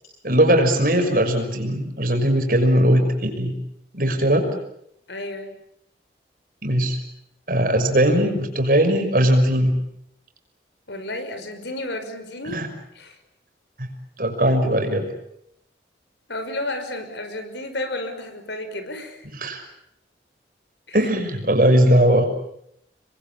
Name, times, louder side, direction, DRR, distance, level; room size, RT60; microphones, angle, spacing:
voice 1, 0.2-3.5 3.9-4.5 6.6-7.0 7.5-9.7 12.5-12.7 13.8-13.9 14.2-15.1 19.4-19.6 20.9-22.2, right 1 dB, 50° right, 5 dB, 6.1 m, -19 dB
voice 2, 5.1-5.6 10.9-12.6 12.9-13.2 16.3-19.3 20.9-21.1, left 1 dB, 85° left, 8 dB, 5.7 m, -32 dB
29.0 x 22.5 x 8.8 m, 0.75 s
head